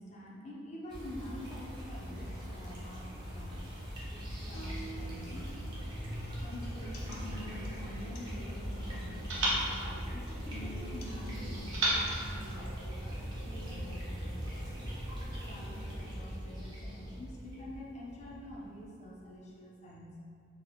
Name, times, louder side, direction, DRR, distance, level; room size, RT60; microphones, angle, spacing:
voice 1, 0.0-3.7 4.0-5.5 6.4-14.7 15.4-20.3, left 1 dB, 35° left, -4 dB, 0.4 m, -47 dB
sound 1, 0.9-19.1, equal, 25° right, 0.5 m, -41 dB
sound 2, 4.5-12.5, equal, 85° left, 0.5 m, -49 dB
sound 3, 7.5-8.7 9.3-10.9 11.7-13.3, right 1 dB, 60° right, 0.7 m, -36 dB
4.0 x 2.0 x 2.8 m, 2.3 s
head